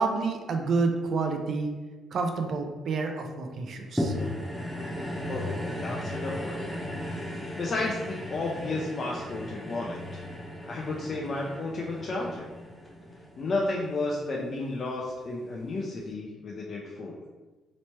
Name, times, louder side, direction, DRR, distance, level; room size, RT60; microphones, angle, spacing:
voice 1, 0.0-1.7 2.1-4.1, right 4 dB, 60° right, 4 dB, 0.5 m, -28 dB
sound 1, 4.0-14.5 15.1-15.2, left 1 dB, 5° left, 0.8 m, -36 dB
voice 2, 5.8-6.6 7.3-10.2 10.6-12.5 13.4-17.2, left 2 dB, 50° left, -3 dB, 0.4 m, -32 dB
3.2 x 3.0 x 2.9 m, 1.3 s
cardioid pair, 90°, 0 cm